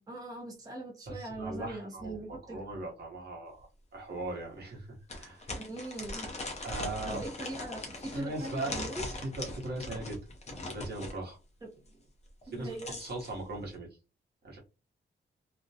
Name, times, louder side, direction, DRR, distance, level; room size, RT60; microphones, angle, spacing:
voice 1, 0.0-2.6 5.6-6.3 7.0-9.1 11.6-11.7 12.5-13.0, right 2 dB, 20° right, 0 dB, 0.6 m, -41 dB
voice 2, 1.1-3.6 3.9-5.6 6.6-7.2 8.1-8.9 9.2-10.2 10.5-11.4 12.5-14.0 14.4-14.6, right 2 dB, 55° right, -1 dB, 0.9 m, -39 dB
sound 1, 3.6-3.7 4.1-4.2 5.1-11.2 12.4-13.3, left 2 dB, 35° left, 0.6 m, -40 dB
2.4 x 2.1 x 2.6 m, 0.30 s
wide cardioid pair, 175°, 20 cm